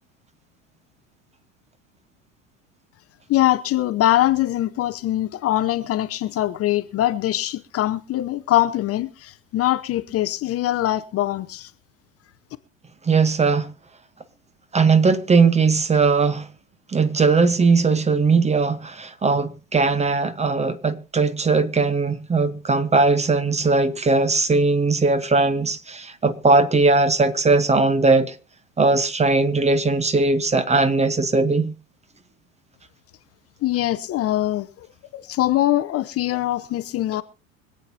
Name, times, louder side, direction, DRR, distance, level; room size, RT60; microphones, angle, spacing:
voice 1, 3.3-11.7 33.6-34.9 35.1-37.2, left 14 dB, 35° left, 0.7 m, -22 dB
voice 2, 13.0-13.7 14.7-16.5 16.9-28.3 28.8-31.7, right 3 dB, 15° right, 1.0 m, -19 dB
25.5 x 8.5 x 2.8 m
hypercardioid pair, 75°, 40 cm